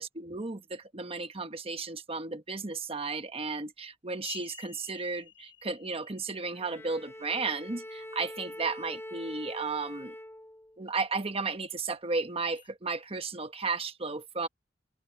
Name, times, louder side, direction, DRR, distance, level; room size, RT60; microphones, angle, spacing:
voice 1, 0.0-10.1 10.8-14.5, right 4 dB, 30° right, 1.2 m, -34 dB
sound 1, 3.3-3.4 4.2-7.9 12.5-12.7, left 10 dB, 85° left, 5.5 m, -50 dB
Bowed string instrument, 6.5-10.9, left 1 dB, 15° left, 2.0 m, -44 dB
head